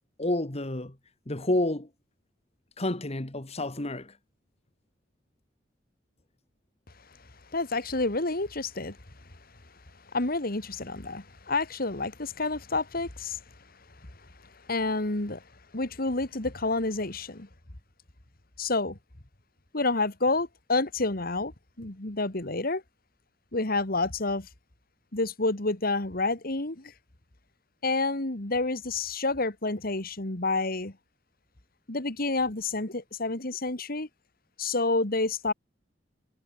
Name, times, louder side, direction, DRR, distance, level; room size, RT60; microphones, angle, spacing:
voice 1, 0.2-1.0 1.3-1.9 2.8-4.1, left 1 dB, 35° left, 2.0 m, -29 dB
voice 2, 7.5-9.0 10.1-13.4 14.7-15.4 15.7-17.5 18.6-19.0 19.7-21.5 21.8-22.8 23.5-24.5 25.1-26.9 27.8-30.9 31.9-34.1 34.6-35.5, left 3 dB, 55° left, 2.4 m, -29 dB
head